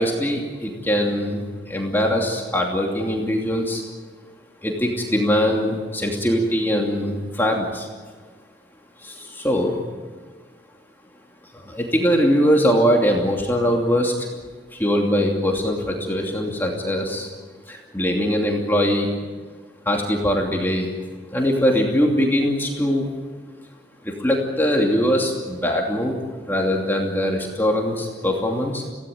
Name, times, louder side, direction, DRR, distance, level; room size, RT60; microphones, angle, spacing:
voice 1, 0.0-3.8 4.6-7.9 9.0-9.8 11.5-14.3 14.7-17.3 17.7-19.1 19.9-20.9 21.3-23.1 24.0-26.2 26.4-28.8, equal, 10° left, 0 dB, 2.7 m, -22 dB
25.0 x 17.5 x 9.3 m, 1.4 s
head